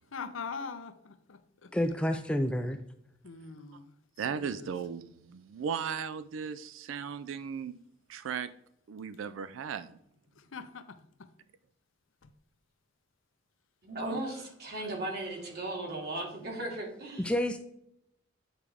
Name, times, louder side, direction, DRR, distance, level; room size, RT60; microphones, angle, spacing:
voice 1, 0.1-1.7 3.2-3.9 4.3-4.7 10.4-11.3 12.2-12.3, left 5 dB, 80° left, 0.6 m, -43 dB
voice 2, 1.7-2.8 17.2-17.6, left 1 dB, 5° left, 0.3 m, -29 dB
voice 3, 4.2-7.8 8.1-8.5 8.9-10.0 14.0-14.2, right 7 dB, 75° right, 0.3 m, -36 dB
voice 4, 13.8-17.3, right 1 dB, 50° right, 2.2 m, -37 dB
9.0 x 4.8 x 3.3 m
head